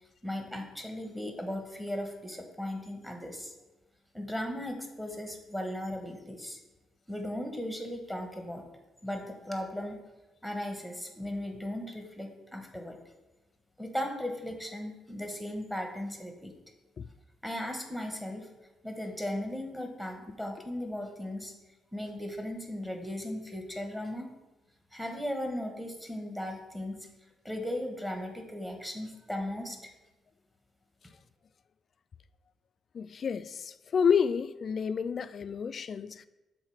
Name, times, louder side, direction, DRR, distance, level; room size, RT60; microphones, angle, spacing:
voice 1, 0.2-3.5 4.1-6.6 7.1-8.6 9.0-10.0 10.4-13.0 13.8-16.5 17.4-18.5 18.8-21.5 21.9-24.3 24.9-27.1 27.4-29.9, left 1 dB, 5° right, 1.2 m, -37 dB
voice 2, 32.9-36.3, left 6 dB, 50° left, 0.3 m, -29 dB
6.5 x 4.1 x 4.7 m
cardioid pair, 90°, 0 cm